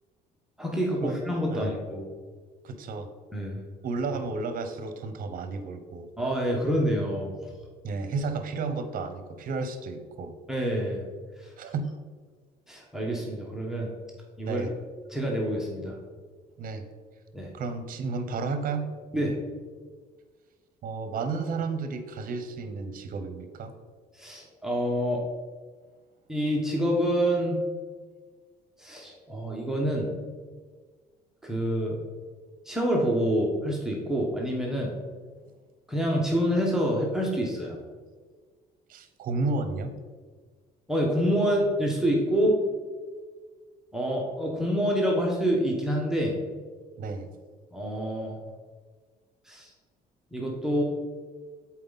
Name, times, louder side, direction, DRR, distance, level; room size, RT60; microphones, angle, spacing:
voice 1, 0.6-2.1 3.3-3.6 6.2-7.3 10.5-11.0 11.4-11.5 12.7-13.9 14.4-14.6 15.1-16.0 17.3-17.5 19.1-19.4 24.1-25.2 26.3-27.6 28.8-30.1 31.4-32.0 32.6-34.9 35.9-37.8 40.9-42.6 43.9-46.4 47.7-48.4 49.5-49.7 50.3-50.8, equal, 5° right, -2 dB, 1.2 m, -27 dB
voice 2, 2.6-3.1 3.8-6.1 7.8-10.3 11.6-11.8 14.4-14.7 16.6-16.8 17.5-18.9 20.8-23.7 38.9-39.9 47.0-47.3, right 4 dB, 55° right, 9 dB, 0.8 m, -32 dB
7.6 x 4.3 x 4.0 m, 1.5 s
cardioid pair, 110°, 17 cm